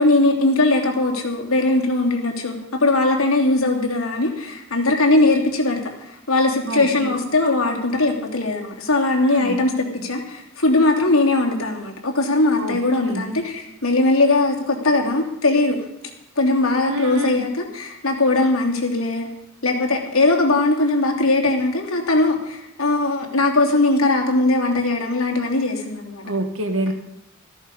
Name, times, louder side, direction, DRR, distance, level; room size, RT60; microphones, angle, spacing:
voice 1, 0.0-15.8 16.4-19.3 19.6-26.2, left 2 dB, 85° left, 2 dB, 3.1 m, -20 dB
voice 2, 6.7-7.2 9.2-9.6 12.6-13.2 16.9-17.5 26.2-26.9, right 1 dB, 65° right, 6 dB, 1.9 m, -27 dB
14.0 x 14.0 x 5.4 m, 0.82 s
head